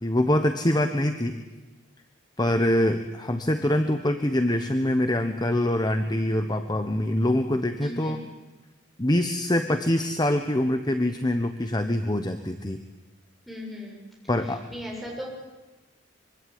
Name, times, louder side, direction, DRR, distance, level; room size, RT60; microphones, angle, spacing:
voice 1, 0.0-1.4 2.4-8.2 9.0-12.8 14.3-14.6, left 1 dB, 20° left, 7 dB, 1.2 m, -24 dB
voice 2, 7.8-8.2 13.5-14.0 14.7-15.3, equal, ahead, -2 dB, 7.5 m, -37 dB
25.0 x 24.0 x 9.5 m, 1.1 s
head